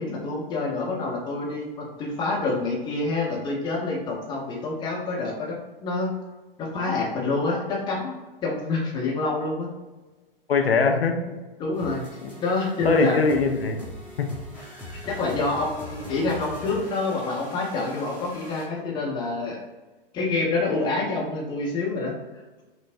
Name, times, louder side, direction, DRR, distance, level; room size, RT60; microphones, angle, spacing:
voice 1, 0.0-5.6 5.8-6.1 6.6-8.1 8.4-9.7 11.6-12.1 12.4-13.2 15.1-19.6 20.1-22.1, left 3 dB, 15° left, -2 dB, 0.7 m, -27 dB
voice 2, 10.5-11.4 12.8-13.9 14.2-14.3, left 4 dB, 75° left, 5 dB, 0.6 m, -22 dB
sound 1, 11.7-18.7, left 1 dB, 5° right, 1.2 m, -41 dB
5.6 x 2.0 x 2.4 m, 1.2 s
figure-of-eight pair, 110°, 30 cm